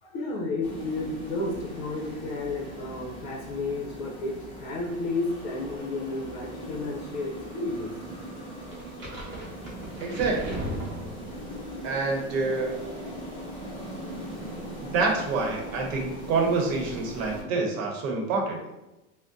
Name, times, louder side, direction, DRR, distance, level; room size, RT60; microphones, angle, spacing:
voice 1, 0.0-7.9, left 2 dB, 50° left, -1 dB, 0.7 m, -32 dB
sound 1, 0.6-17.4, right 1 dB, 15° left, 0.9 m, -40 dB
sound 2, 8.7-11.6, equal, 30° right, 0.9 m, -36 dB
voice 2, 10.0-10.6 11.8-12.7 14.8-18.6, right 3 dB, 75° right, 2 dB, 0.9 m, -27 dB
3.6 x 2.1 x 2.6 m, 0.98 s
supercardioid pair, 130°, 41 cm